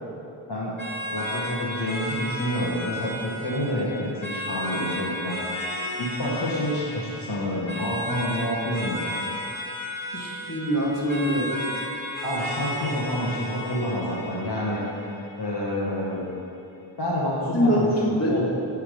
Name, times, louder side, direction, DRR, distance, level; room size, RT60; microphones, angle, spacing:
sound 1, 0.8-15.7, left 1 dB, 80° left, 1.6 m, -34 dB
voice 1, 1.1-5.4 6.0-9.0 12.2-14.8 15.4-16.2 17.0-18.4, equal, 55° left, -6 dB, 1.3 m, -28 dB
voice 2, 10.1-11.5 17.5-18.4, equal, 35° left, -5 dB, 1.7 m, -23 dB
9.5 x 3.6 x 6.5 m, 2.7 s
wide cardioid pair, 55°, 47 cm